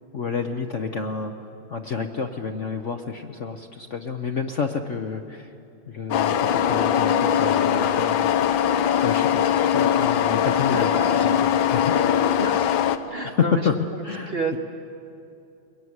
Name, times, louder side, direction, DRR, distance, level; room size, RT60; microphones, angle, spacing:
voice 1, 0.1-1.3 1.7-5.5 5.9-8.5 9.0-11.4 11.7-12.0 13.2-14.3, left 5 dB, 50° left, 5 dB, 0.9 m, -29 dB
sound 1, 6.1-13.0, left 9 dB, 75° left, 1.6 m, -21 dB
voice 2, 10.7-11.4 12.4-14.0 14.3-14.6, right 3 dB, 40° right, 4 dB, 0.9 m, -31 dB
22.0 x 21.5 x 9.6 m, 2.6 s
omnidirectional pair, 2.2 m